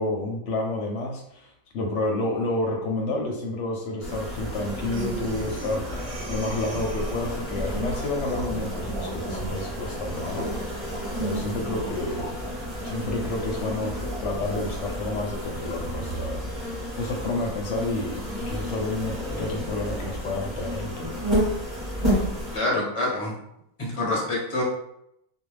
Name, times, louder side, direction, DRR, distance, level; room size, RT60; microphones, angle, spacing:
voice 1, 0.0-10.5 11.2-12.3 12.8-21.1, left 2 dB, 65° left, 0 dB, 0.8 m, -30 dB
sound 1, 4.0-22.6, equal, ahead, 1.0 m, -31 dB
Breathing, 4.9-7.5, right 3 dB, 75° right, 1.1 m, -38 dB
sound 2, 7.1-15.1, right 1 dB, 50° right, 0.8 m, -42 dB
voice 2, 22.5-23.3 23.8-24.6, left 1 dB, 35° left, -4 dB, 0.5 m, -26 dB
2.4 x 2.1 x 3.2 m, 0.76 s
omnidirectional pair, 1.5 m